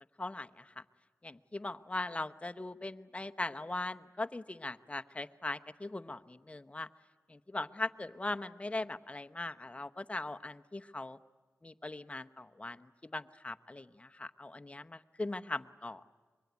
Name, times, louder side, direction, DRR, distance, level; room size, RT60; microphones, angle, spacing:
voice 1, 0.2-0.8 1.2-6.9 7.3-11.2 11.6-16.0, left 2 dB, 25° left, 9 dB, 1.0 m, -40 dB
25.0 x 22.5 x 9.5 m, 1.4 s
cardioid pair, 60°, 5 cm